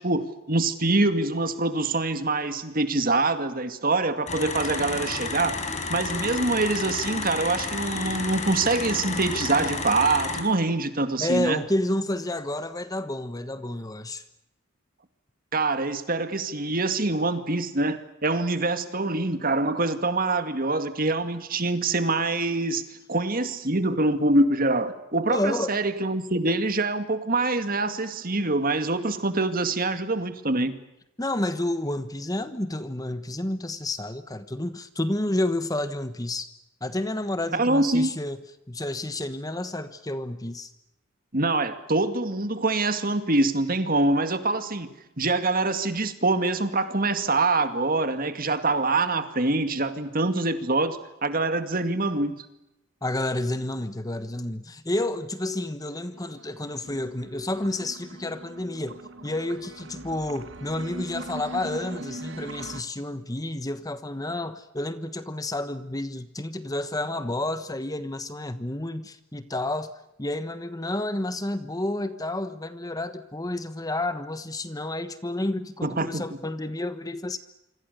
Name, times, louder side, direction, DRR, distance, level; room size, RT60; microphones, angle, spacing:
voice 1, 0.0-5.6 5.9-11.6 15.5-22.8 23.1-30.7 37.5-38.1 41.3-44.9 45.2-52.5 75.8-76.2, right 2 dB, 45° right, 2.2 m, -25 dB
sound 1, 4.3-10.4, left 4 dB, 35° left, 4.9 m, -31 dB
voice 2, 11.2-14.2 25.3-25.8 31.2-36.5 36.8-38.4 38.7-40.7 53.0-69.9 70.2-77.4, left 1 dB, 15° left, 1.2 m, -30 dB
sound 2, 56.0-62.8, right 2 dB, 60° right, 1.5 m, -41 dB
28.0 x 26.0 x 6.8 m
head